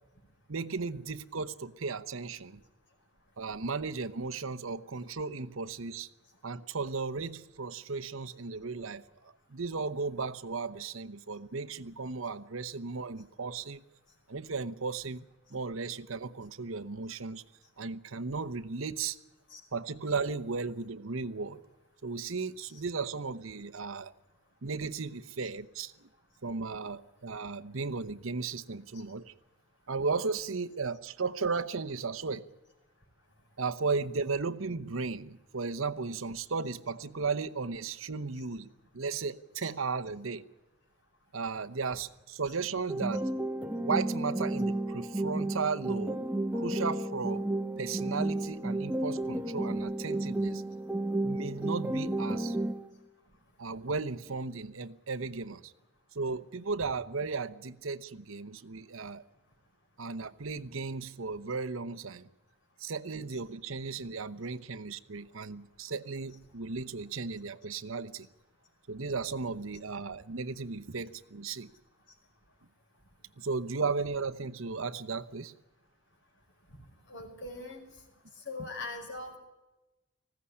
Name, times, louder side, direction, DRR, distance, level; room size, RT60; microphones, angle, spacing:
voice 1, 0.5-2.6 3.4-6.1 6.4-13.8 14.3-15.2 15.5-17.4 17.8-19.2 19.7-21.6 22.0-24.1 24.6-26.1 26.4-29.3 29.9-32.5 33.6-40.4 41.3-43.3 43.8-46.3 46.5-47.5 47.8-50.6 51.2-52.6 53.6-55.7 56.1-59.2 60.0-62.3 62.8-68.3 68.9-71.7 73.4-75.5 78.6-78.7, right 4 dB, 75° right, 0.9 m, -35 dB
sound 1, 42.9-52.9, right 1 dB, 5° right, 1.1 m, -32 dB
voice 2, 77.1-77.8 78.5-79.4, left 3 dB, 60° left, 5.4 m, -40 dB
20.0 x 16.0 x 9.8 m
head